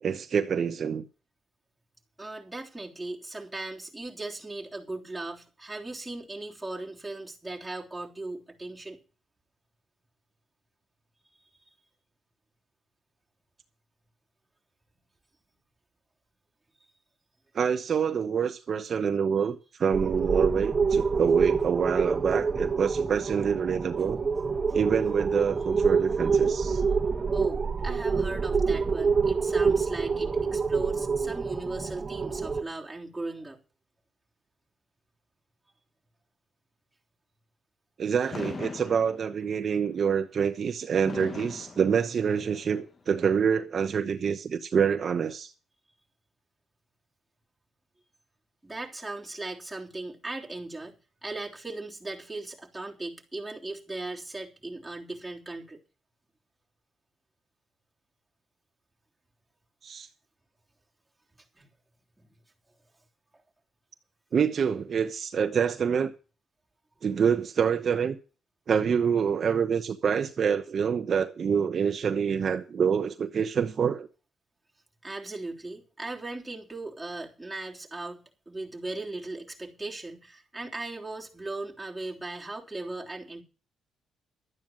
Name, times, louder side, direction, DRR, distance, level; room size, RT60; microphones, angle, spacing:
voice 1, 0.0-1.0 17.5-24.2 24.7-26.8 38.0-45.5 59.8-60.1 64.3-66.1 67.0-68.2 68.7-74.1, right 7 dB, 50° right, 0.9 m, -26 dB
voice 2, 2.2-9.0 26.2-26.4 26.7-27.1 27.3-33.6 38.2-38.5 48.6-55.8 61.5-61.7 75.0-83.4, right 2 dB, 10° right, 3.4 m, -38 dB
sound 1, 19.9-32.6, right 5 dB, 30° right, 1.4 m, -26 dB
Fireworks, 38.3-39.6 41.1-42.6, left 4 dB, 35° left, 1.2 m, -39 dB
12.0 x 9.1 x 6.3 m
cardioid pair, 90°, 0 cm